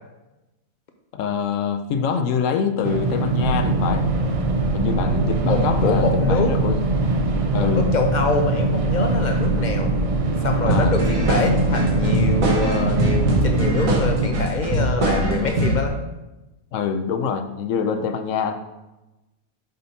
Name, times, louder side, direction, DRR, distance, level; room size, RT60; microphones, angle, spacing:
voice 1, 1.1-4.1 4.7-6.8 7.5-7.9 10.6-11.0 16.7-18.5, left 6 dB, 70° left, 7 dB, 0.9 m, -25 dB
sound 1, 2.8-14.3, right 2 dB, 60° right, 0.3 m, -23 dB
sound 2, 3.4-15.5, right 2 dB, 35° right, 1.4 m, -29 dB
voice 2, 5.4-6.5 7.6-9.9 10.4-16.0, left 3 dB, 55° left, 4 dB, 0.5 m, -24 dB
sound 3, 10.7-15.9, right 1 dB, 75° right, 1.5 m, -23 dB
5.5 x 5.2 x 4.0 m, 1.0 s
omnidirectional pair, 1.4 m